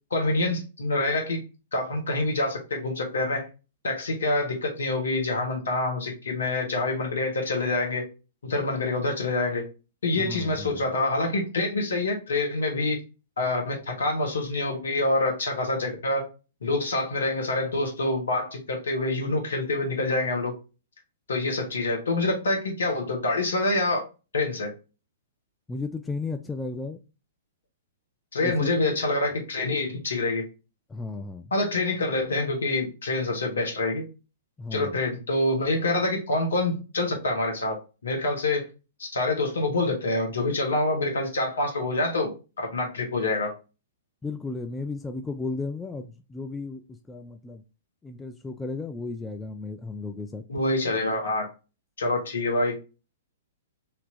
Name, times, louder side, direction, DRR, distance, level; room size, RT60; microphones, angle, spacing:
voice 1, 0.1-1.4 1.7-3.5 3.8-8.0 8.4-9.7 10.0-13.0 13.4-16.3 16.6-20.5 21.3-24.1 24.3-24.7 28.3-30.4 31.5-34.1 34.7-38.7 39.0-43.5 50.5-51.5 52.0-52.8, left 2 dB, 70° left, 1.2 m, -26 dB
voice 2, 10.2-10.9 25.7-27.0 28.4-28.7 30.9-31.5 34.6-35.0 44.2-46.8 47.1-47.6 48.0-50.4, left 3 dB, 10° left, 0.3 m, -34 dB
3.3 x 2.8 x 2.6 m
figure-of-eight pair, 110°, 0 cm